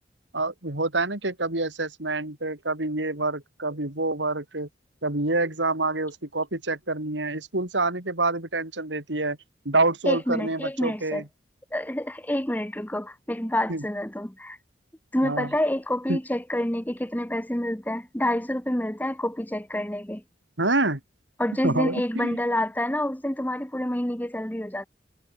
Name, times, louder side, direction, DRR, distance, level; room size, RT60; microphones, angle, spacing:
voice 1, 0.3-4.7 5.0-9.4 9.7-11.2 13.7-13.8 15.2-15.5 16.1-16.2 20.6-21.0 21.6-22.4, right 2 dB, 85° right, 3.8 m, -27 dB
voice 2, 10.1-11.2 11.7-14.6 15.1-20.2 21.4-24.9, left 1 dB, 10° left, 1.4 m, -28 dB
head